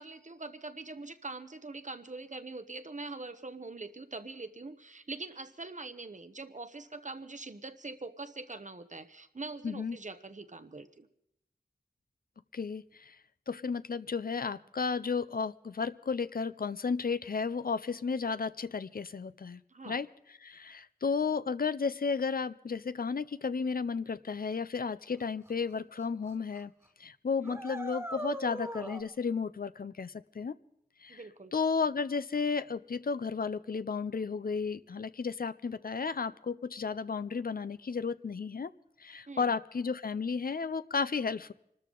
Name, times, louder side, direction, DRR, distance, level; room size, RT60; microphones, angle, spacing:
voice 1, 0.0-11.1 19.7-20.0 27.4-27.6 31.1-31.5 39.3-39.5, right 3 dB, 55° right, 10 dB, 0.9 m, -43 dB
voice 2, 9.6-10.0 12.5-13.2 13.5-19.6 19.9-20.1 20.4-26.7 27.0-30.5 31.0-31.2 31.5-38.7 39.0-41.5, left 5 dB, 75° left, 14 dB, 0.5 m, -33 dB
sound 1, 25.5-25.6 26.0-26.3 26.6-26.7 27.4-29.0, right 1 dB, 20° right, 1.5 m, -39 dB
25.5 x 13.0 x 3.8 m, 0.78 s
wide cardioid pair, 45°, 15 cm